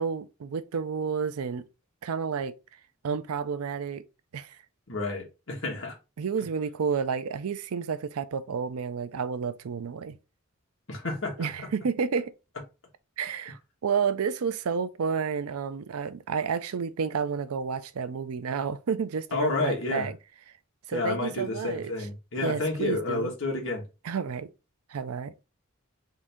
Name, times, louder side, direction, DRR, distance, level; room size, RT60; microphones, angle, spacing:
voice 1, 0.0-1.6 2.0-2.5 3.0-4.0 4.3-4.5 6.2-10.2 11.4-12.3 13.2-20.2 20.9-21.9 22.4-23.3 24.0-24.5 24.9-25.3, right 6 dB, 85° right, 0.5 m, -30 dB
voice 2, 4.9-6.0 10.9-11.7 19.3-20.1 20.9-23.8, left 3 dB, 60° left, 1.5 m, -30 dB
3.8 x 2.7 x 3.4 m
head